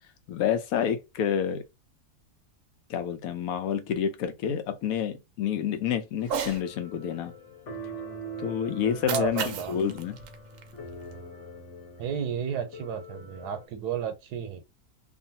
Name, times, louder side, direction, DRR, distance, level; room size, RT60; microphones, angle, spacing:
voice 1, 0.3-1.6 2.9-7.3 8.4-10.2, left 8 dB, 75° left, 1.0 m, -29 dB
Cat, 6.2-6.6 8.8-11.2, right 7 dB, 70° right, 0.9 m, -35 dB
sound 1, 6.5-13.7, right 2 dB, 55° left, 1.1 m, -43 dB
voice 2, 9.1-9.8 12.0-14.6, right 8 dB, 85° right, 1.2 m, -32 dB
2.6 x 2.5 x 2.7 m
omnidirectional pair, 1.6 m